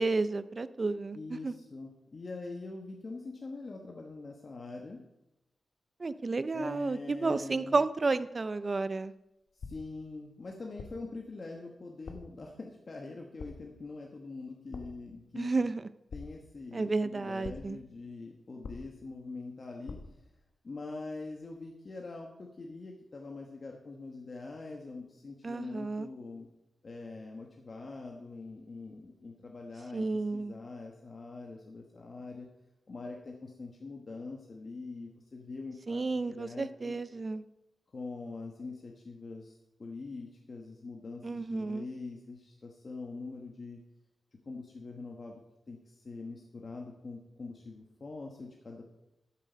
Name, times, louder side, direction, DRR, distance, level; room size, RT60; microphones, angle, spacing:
voice 1, 0.0-1.5 6.0-9.1 15.4-15.8 16.7-17.8 25.4-26.1 29.9-30.5 35.9-37.4 41.2-41.9, right 3 dB, 35° right, 14 dB, 0.5 m, -31 dB
voice 2, 1.1-5.0 6.5-7.8 9.5-15.5 16.1-20.0 20.6-26.5 26.8-32.5 32.9-37.0 37.9-43.8 44.4-45.4 45.7-48.9, left 3 dB, 45° left, 0 dB, 1.3 m, -44 dB
sound 1, 9.6-10.1 10.8-11.2 12.0-12.4 13.4-13.8 14.7-15.1 16.1-16.7 17.4-17.9 18.6-19.2 19.9-20.3, left 4 dB, 90° left, 1.0 m, -46 dB
12.5 x 7.5 x 5.1 m, 0.90 s
wide cardioid pair, 135°, 0 cm